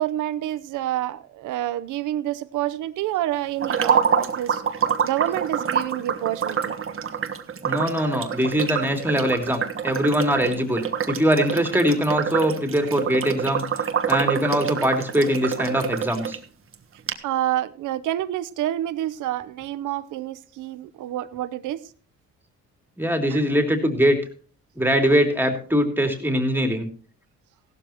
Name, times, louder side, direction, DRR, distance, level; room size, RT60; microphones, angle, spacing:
voice 1, 0.0-4.6 5.0-6.8 8.0-8.2 17.2-21.8 23.3-23.4, right 13 dB, 85° right, 0.8 m, -28 dB
sound 1, 3.6-16.4 16.7-16.8 17.1-17.2, right 7 dB, 45° right, 1.4 m, -26 dB
voice 2, 7.6-13.6 14.1-16.4 23.0-24.2 24.8-26.9, equal, 5° right, 2.9 m, -22 dB
16.0 x 12.0 x 3.0 m
cardioid pair, 90°, 30 cm